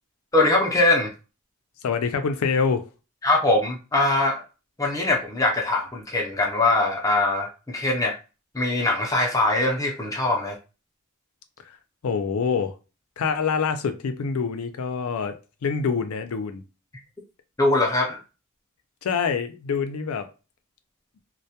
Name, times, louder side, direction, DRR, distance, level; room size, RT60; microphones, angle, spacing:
voice 1, 0.3-1.1 3.2-4.4 4.8-8.1 8.5-10.6 17.6-18.2, left 2 dB, 15° left, 0.5 m, -22 dB
voice 2, 1.8-2.9 12.0-12.7 13.2-15.3 15.6-16.6 19.0-20.3, left 5 dB, 80° left, 0.4 m, -25 dB
2.2 x 2.1 x 2.7 m
head